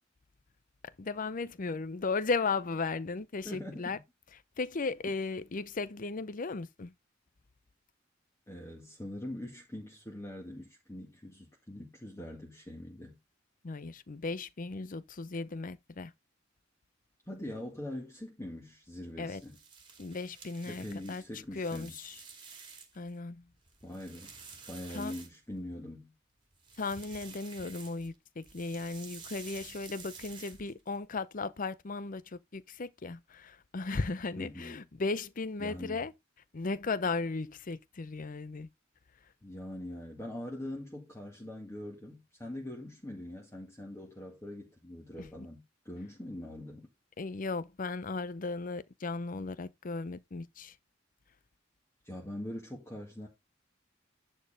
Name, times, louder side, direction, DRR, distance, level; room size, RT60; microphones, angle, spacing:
voice 1, 1.0-4.0 4.6-6.9 13.6-16.1 19.2-19.4 20.0-21.2 21.5-22.2 23.0-23.5 24.9-25.1 26.8-36.1 36.5-38.7 45.2-45.3 47.2-50.7, left 3 dB, 45° left, 0.6 m, -36 dB
voice 2, 3.4-3.9 8.5-13.2 17.3-19.6 20.7-21.9 23.8-24.4 24.7-26.1 34.4-34.8 35.6-36.1 39.4-46.9 52.0-53.3, left 1 dB, 15° left, 2.2 m, -43 dB
sound 1, 19.3-23.1 23.5-25.8 26.5-28.1 28.4-31.0, right 5 dB, 25° right, 2.4 m, -51 dB
10.0 x 4.4 x 5.0 m
head